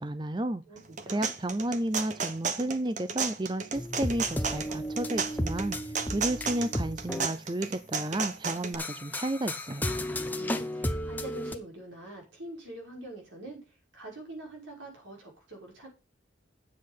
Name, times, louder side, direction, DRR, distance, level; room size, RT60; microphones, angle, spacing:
voice 1, 0.0-0.6 1.1-5.8 6.1-9.9, right 1 dB, 25° right, 13 dB, 0.5 m, -32 dB
voice 2, 0.7-1.3 10.4-13.6 13.9-15.9, right 1 dB, 90° right, -1 dB, 5.7 m, -44 dB
sound 1, 0.8-8.7, right 5 dB, 40° right, 0.9 m, -33 dB
sound 2, 3.7-7.3 8.6-11.6, left 1 dB, 10° left, 0.7 m, -34 dB
8.6 x 7.5 x 5.6 m, 0.30 s
head